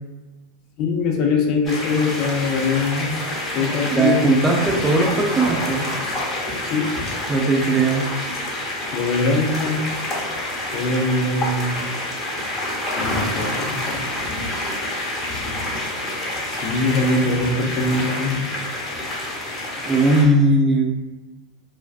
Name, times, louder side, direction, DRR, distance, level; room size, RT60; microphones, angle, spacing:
voice 1, 0.8-3.2 3.5-4.2 6.6-6.9 8.9-9.9 10.7-11.8 13.0-14.0 16.5-18.5, left 3 dB, 50° left, 1 dB, 0.5 m, -22 dB
sound 1, 1.6-20.2, left 1 dB, 25° left, 0.8 m, -27 dB
voice 2, 3.9-5.9 7.3-8.1 19.8-21.0, right 2 dB, 15° right, -1 dB, 0.5 m, -18 dB
2.4 x 2.1 x 2.4 m, 1.1 s
hypercardioid pair, 100°, 0 cm